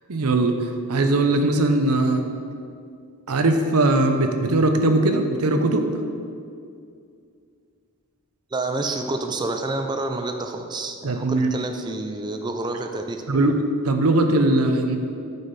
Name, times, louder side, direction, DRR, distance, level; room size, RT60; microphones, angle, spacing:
voice 1, 0.1-2.2 3.3-5.9 11.0-11.6 13.3-13.6 13.8-15.0, right 2 dB, 80° right, 6 dB, 0.7 m, -20 dB
voice 2, 8.5-13.4, right 2 dB, 20° right, 5 dB, 0.4 m, -28 dB
9.2 x 5.2 x 4.1 m, 2.3 s
head